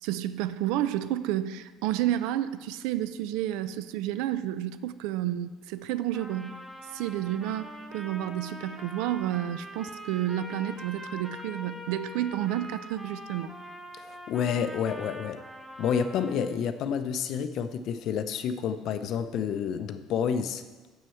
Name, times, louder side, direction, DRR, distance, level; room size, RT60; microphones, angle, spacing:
voice 1, 0.0-6.6 6.9-13.5, right 12 dB, 85° right, 14 dB, 0.4 m, -30 dB
Trumpet, 6.1-16.5, equal, 5° right, 0.7 m, -43 dB
voice 2, 14.0-15.4 15.8-20.6, left 7 dB, 50° left, 11 dB, 0.5 m, -29 dB
7.3 x 6.3 x 5.7 m, 1.3 s
cardioid pair, 165°, 0 cm